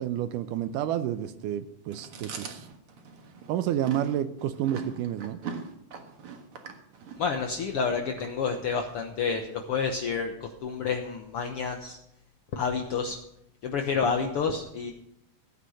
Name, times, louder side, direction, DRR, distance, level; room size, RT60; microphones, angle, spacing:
voice 1, 0.0-2.7 3.5-5.4, right 11 dB, 80° right, 12 dB, 2.1 m, -30 dB
Chewing mastication, 1.9-9.0, right 5 dB, 50° right, 2.0 m, -42 dB
voice 2, 7.2-12.0 12.5-13.2 13.6-14.9, left 5 dB, 70° left, 4 dB, 1.3 m, -29 dB
16.0 x 9.8 x 6.5 m, 0.81 s
omnidirectional pair, 4.1 m